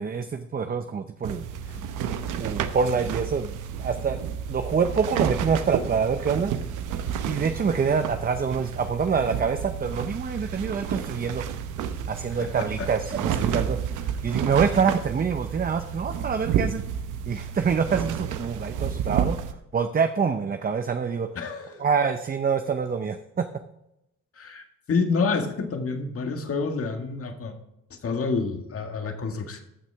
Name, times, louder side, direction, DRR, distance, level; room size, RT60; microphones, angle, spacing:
voice 1, 0.0-1.5 2.4-3.5 3.8-6.5 7.2-11.4 12.1-13.8 14.2-16.8 17.3-19.4 19.7-21.3 21.8-23.4, right 6 dB, 30° right, 8 dB, 0.7 m, -26 dB
sound 1, 1.2-19.5, right 8 dB, 90° right, 0.8 m, -31 dB
voice 2, 12.3-12.9 21.4-21.8 24.4-27.5 28.0-29.6, left 4 dB, 50° left, 5 dB, 1.8 m, -28 dB
14.5 x 6.1 x 3.5 m, 0.83 s
cardioid pair, 90°, 30 cm